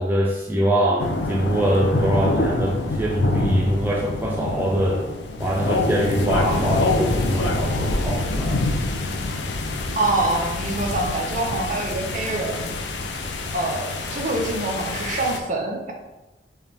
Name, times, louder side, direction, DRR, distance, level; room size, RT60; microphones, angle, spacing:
voice 1, 0.0-5.0 5.4-8.6, right 1 dB, 10° right, -3 dB, 0.4 m, -23 dB
sound 1, 1.0-15.4, left 2 dB, 75° left, 0.5 m, -25 dB
voice 2, 9.9-12.7 13.5-15.9, right 2 dB, 45° right, 1 dB, 0.8 m, -25 dB
4.5 x 3.4 x 3.5 m, 1.1 s
head